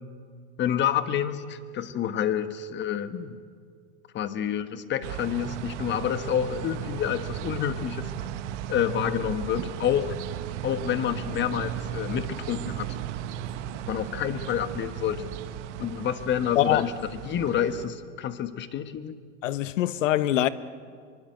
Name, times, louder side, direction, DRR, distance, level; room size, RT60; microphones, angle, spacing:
voice 1, 0.6-3.4 4.1-8.1 8.7-10.1 10.6-12.9 13.9-15.3 15.8-19.2, left 9 dB, 30° left, 11 dB, 1.4 m, -28 dB
sound 1, 5.0-17.9, right 10 dB, 70° right, 1.7 m, -35 dB
voice 2, 16.5-16.8 19.4-20.5, left 13 dB, 85° left, 15 dB, 1.2 m, -23 dB
25.5 x 23.5 x 7.9 m, 2.1 s
supercardioid pair, 130°, 37 cm